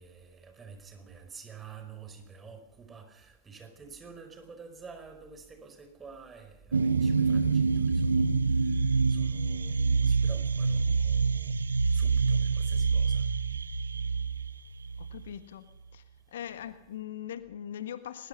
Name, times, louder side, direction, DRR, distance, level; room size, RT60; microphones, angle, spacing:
voice 1, 0.0-8.3 9.1-11.5 11.9-13.2, right 5 dB, 20° right, 4.8 m, -49 dB
sound 1, 6.7-15.3, right 4 dB, 75° right, 0.9 m, -26 dB
voice 2, 15.0-15.7 15.9-16.0 16.3-18.3, left 10 dB, 60° left, 1.4 m, -40 dB
22.0 x 21.0 x 5.8 m
figure-of-eight pair, 90°, 0 cm